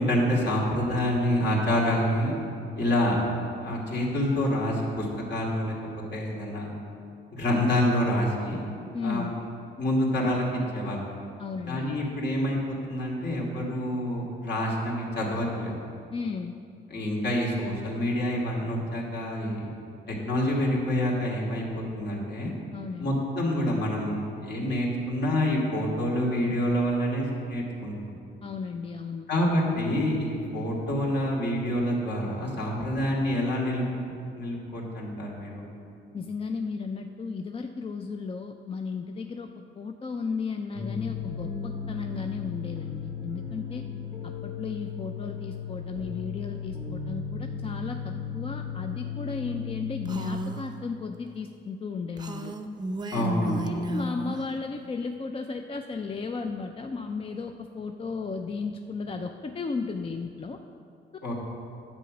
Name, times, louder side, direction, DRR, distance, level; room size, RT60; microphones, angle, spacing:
voice 1, 0.0-2.3 2.8-3.2 3.6-5.7 6.1-6.7 7.3-8.7 9.0-9.3 9.8-11.1 11.7-15.8 16.9-19.7 20.1-22.5 23.0-24.2 24.4-28.0 29.3-33.8 34.3-35.6 53.1-53.7 61.2-61.3, left 1 dB, 60° left, -3 dB, 2.5 m, -27 dB
voice 2, 8.9-9.3 11.4-11.9 16.1-16.5 22.7-23.2 28.4-29.3 36.1-39.5 39.7-43.9 44.2-52.5 53.1-60.6, left 4 dB, 30° left, 5 dB, 0.4 m, -34 dB
sound 1, 40.7-50.4, left 7 dB, 75° left, 2.4 m, -35 dB
Female speech woman speaking, 50.1-50.7 52.2-54.4, right 1 dB, 20° right, 0.6 m, -32 dB
9.7 x 7.9 x 5.1 m, 2.5 s
cardioid pair, 90°, 20 cm